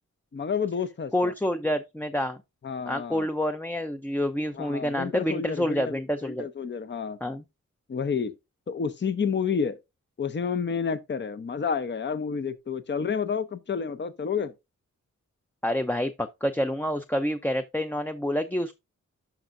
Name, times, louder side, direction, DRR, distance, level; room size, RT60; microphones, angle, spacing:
voice 1, 0.3-1.3 2.6-3.3 4.6-5.9 6.2-7.2 7.9-8.3 8.7-9.8 10.2-14.5, left 6 dB, 35° left, 0.7 m, -30 dB
voice 2, 1.1-2.4 2.9-6.5 7.2-7.4 15.6-18.7, equal, 5° left, 0.5 m, -28 dB
12.0 x 5.3 x 2.6 m
wide cardioid pair, 105°, 30 cm